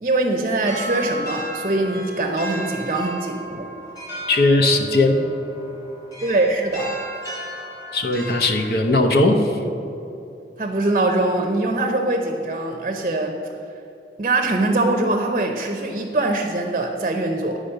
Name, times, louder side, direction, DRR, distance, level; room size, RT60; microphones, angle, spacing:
voice 1, 0.0-3.7 6.2-6.9 10.6-13.4 14.2-17.6, right 2 dB, 40° right, 3 dB, 0.6 m, -22 dB
sound 1, 0.6-8.7, equal, 20° left, 1.7 m, -35 dB
voice 2, 4.3-5.2 7.9-9.6, left 2 dB, 60° left, 4 dB, 0.8 m, -18 dB
10.0 x 5.0 x 6.6 m, 2.9 s
head